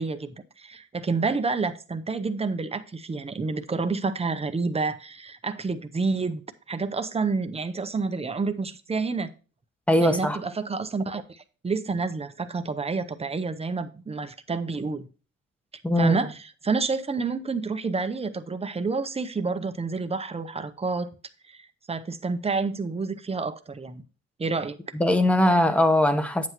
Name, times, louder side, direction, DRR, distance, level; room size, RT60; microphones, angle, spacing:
voice 1, 0.0-6.4 6.7-9.3 10.0-15.1 16.0-16.3 16.6-21.1 21.5-24.0 24.4-24.8, right 4 dB, 20° right, 0.7 m, -29 dB
voice 2, 9.9-10.4 15.8-16.1 24.9-26.5, left 1 dB, 5° left, 0.9 m, -20 dB
9.3 x 7.9 x 3.0 m
wide cardioid pair, 155°, 31 cm